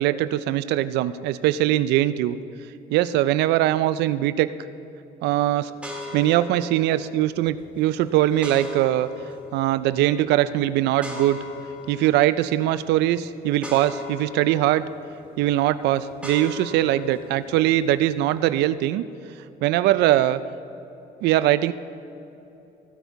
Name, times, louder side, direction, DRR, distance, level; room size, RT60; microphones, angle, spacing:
voice 1, 0.0-2.4 2.9-4.5 5.2-5.7 6.1-9.1 9.5-11.4 11.9-14.8 15.4-19.0 19.6-20.4 21.2-21.7, right 14 dB, 85° right, 14 dB, 0.4 m, -21 dB
sound 1, 5.8-18.6, left 2 dB, 5° right, 1.9 m, -40 dB
15.0 x 8.0 x 4.6 m, 3.0 s
cardioid pair, 110°, 17 cm